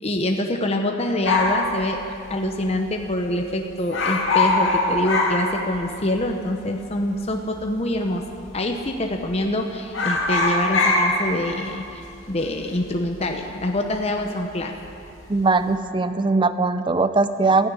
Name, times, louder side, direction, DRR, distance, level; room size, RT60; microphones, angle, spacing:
voice 1, 0.0-8.2 8.5-14.7, left 1 dB, 30° left, 3 dB, 0.8 m, -25 dB
sound 1, 1.2-2.7 3.0-3.1 3.3-3.6 3.9-6.2 6.4-6.5 7.3-8.0 8.3-8.6 8.9-9.5 9.8-14.5 14.8-15.2, left 2 dB, 60° left, 2.4 m, -23 dB
voice 2, 15.3-17.7, right 3 dB, 20° right, 12 dB, 0.5 m, -20 dB
14.0 x 10.0 x 9.8 m, 2.6 s
head